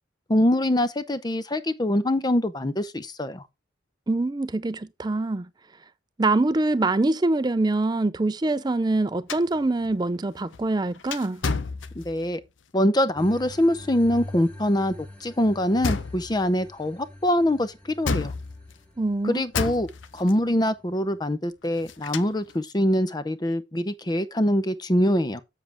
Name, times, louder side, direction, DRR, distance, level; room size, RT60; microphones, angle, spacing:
voice 1, 0.3-3.4 12.0-12.4 12.7-14.9 15.2-18.3 19.2-19.9 20.1-25.4, left 1 dB, 20° left, 0.6 m, -24 dB
voice 2, 4.1-5.5 6.2-11.4 19.0-19.4, right 2 dB, 20° right, 0.4 m, -24 dB
sound 1, 9.3-12.4 15.8-16.5 18.1-18.9 19.5-20.4 21.6-22.6, left 4 dB, 90° left, 0.8 m, -31 dB
sound 2, 13.2-21.2, left 1 dB, 5° left, 1.8 m, -45 dB
7.5 x 7.3 x 3.4 m
head